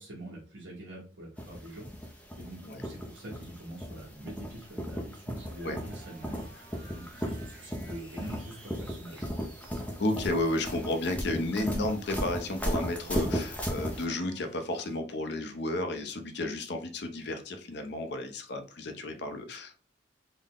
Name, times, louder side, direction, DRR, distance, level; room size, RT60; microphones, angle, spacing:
voice 1, 0.0-9.2, right 1 dB, 65° right, -4 dB, 1.2 m, -45 dB
sound 1, 1.4-14.0, equal, 5° left, 0.4 m, -36 dB
sound 2, 5.4-15.0, right 1 dB, 85° right, 1.1 m, -55 dB
voice 2, 10.0-19.8, left 2 dB, 60° left, 7 dB, 0.6 m, -32 dB
3.7 x 2.1 x 3.6 m, 0.37 s
head